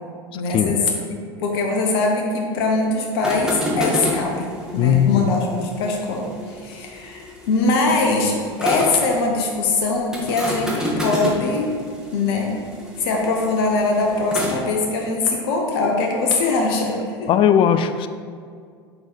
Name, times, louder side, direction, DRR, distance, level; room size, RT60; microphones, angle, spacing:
voice 1, 0.3-11.7 12.1-12.6 13.0-17.3, left 3 dB, 65° left, 1 dB, 0.9 m, -22 dB
sound 1, 3.1-9.0 10.1-14.6, equal, 5° right, 1.6 m, -30 dB
voice 2, 4.8-5.3 17.3-18.1, left 9 dB, 40° left, 10 dB, 0.4 m, -18 dB
6.6 x 3.9 x 4.4 m, 2.1 s
hypercardioid pair, 85°, 14 cm